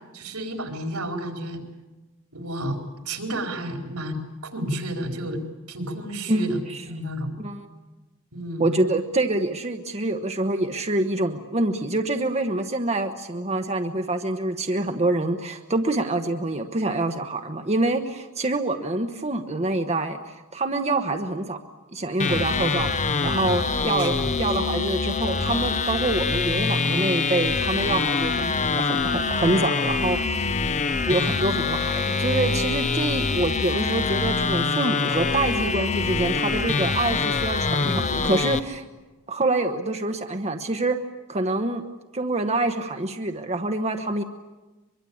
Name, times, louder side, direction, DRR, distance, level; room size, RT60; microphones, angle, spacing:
voice 1, 0.1-1.6 2.3-2.8 3.0-5.4 5.7-6.6 6.9-7.3 8.3-8.6 23.7-24.2, right 1 dB, 85° right, 3 dB, 4.4 m, -31 dB
voice 2, 6.3-6.8 7.4-7.7 8.6-21.6 21.9-30.6 31.0-38.8 39.3-41.0 41.3-41.8 42.1-44.2, right 2 dB, 30° right, 5 dB, 1.1 m, -26 dB
sound 1, 22.2-38.6, left 4 dB, 35° left, 0.8 m, -25 dB
23.5 x 23.5 x 8.7 m, 1.2 s
head